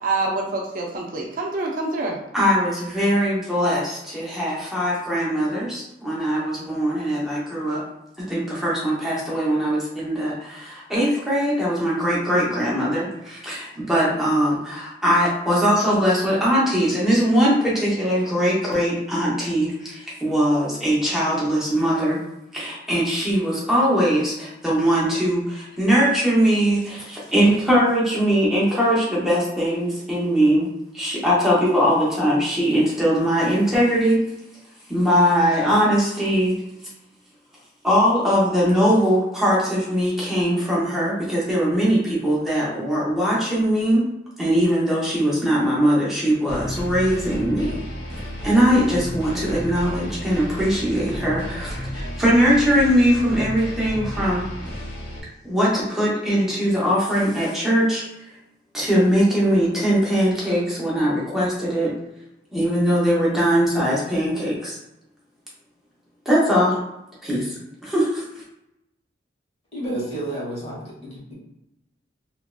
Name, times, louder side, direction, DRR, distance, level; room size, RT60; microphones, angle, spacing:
voice 1, 0.0-2.2, right 3 dB, 45° right, -1 dB, 0.5 m, -26 dB
voice 2, 2.3-7.8 8.3-22.2 22.5-30.7 30.9-34.2 34.9-36.5 37.8-44.0 44.4-47.8 48.4-54.5 55.4-58.0 58.7-61.9 62.5-64.8 66.3-66.8 67.2-68.2, equal, ahead, -7 dB, 0.8 m, -21 dB
sound 1, 46.5-55.2, equal, 65° left, 1.0 m, -32 dB
voice 3, 69.7-71.3, right 1 dB, 35° left, -6 dB, 1.1 m, -30 dB
3.0 x 2.6 x 2.2 m, 0.87 s
head